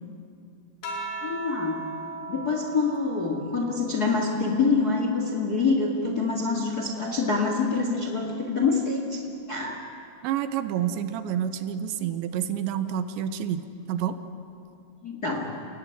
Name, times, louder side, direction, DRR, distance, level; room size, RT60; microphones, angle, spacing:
sound 1, 0.8-5.6 6.1-7.8 9.0-9.5, right 2 dB, 65° left, 4.6 m, -40 dB
voice 1, 1.2-1.8 2.2-9.2 9.5-9.8 15.0-15.5, left 4 dB, 35° left, 2 dB, 1.5 m, -26 dB
voice 2, 10.2-14.2, right 9 dB, 85° right, 10 dB, 3.3 m, -29 dB
30.0 x 17.5 x 9.8 m, 2.5 s
omnidirectional pair, 5.1 m